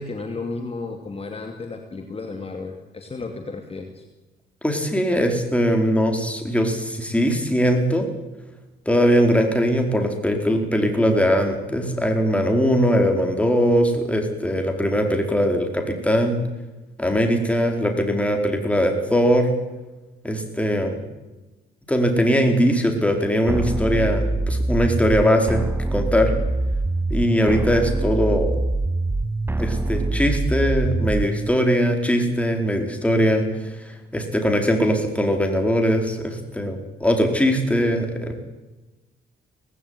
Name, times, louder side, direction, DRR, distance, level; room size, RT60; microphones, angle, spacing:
voice 1, 0.0-4.0, left 3 dB, 30° left, 4 dB, 2.5 m, -33 dB
voice 2, 4.6-8.1 8.9-16.4 17.0-19.5 20.2-21.0 21.9-25.6 25.9-26.3 27.1-28.5 29.6-38.4, equal, 5° left, 4 dB, 4.5 m, -21 dB
sound 1, 23.5-31.5, right 2 dB, 10° right, 0.8 m, -24 dB
18.5 x 16.0 x 9.8 m, 1.1 s
cardioid pair, 90°, 20 cm